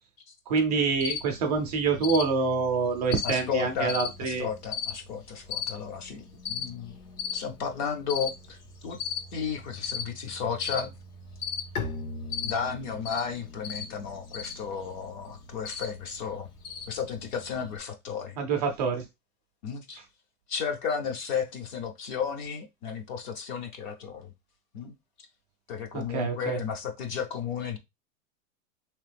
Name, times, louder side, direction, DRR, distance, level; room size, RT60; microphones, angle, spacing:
voice 1, 0.5-4.5 18.4-19.0 25.9-26.6, right 5 dB, 30° right, 0.4 m, -26 dB
Cricket, 1.0-17.8, left 7 dB, 85° left, 1.3 m, -38 dB
voice 2, 3.2-6.9 7.3-8.6 8.8-9.0 9.3-10.9 12.4-16.5 16.9-18.4 19.6-20.0 20.5-24.3 24.7-24.9 25.7-27.8, left 6 dB, 35° left, 0.5 m, -33 dB
Bowed string instrument, 11.7-17.3, left 4 dB, 70° left, 1.2 m, -41 dB
3.5 x 2.9 x 3.3 m
supercardioid pair, 150°, 45 cm